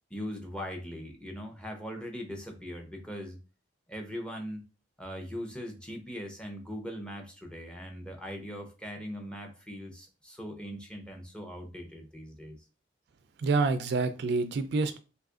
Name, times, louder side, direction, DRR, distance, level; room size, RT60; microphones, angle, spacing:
voice 1, 0.1-3.4 3.9-4.6 5.0-12.6, equal, 5° left, 0.6 m, -40 dB
voice 2, 13.4-15.0, right 3 dB, 60° right, 0.3 m, -27 dB
2.8 x 2.4 x 3.6 m
head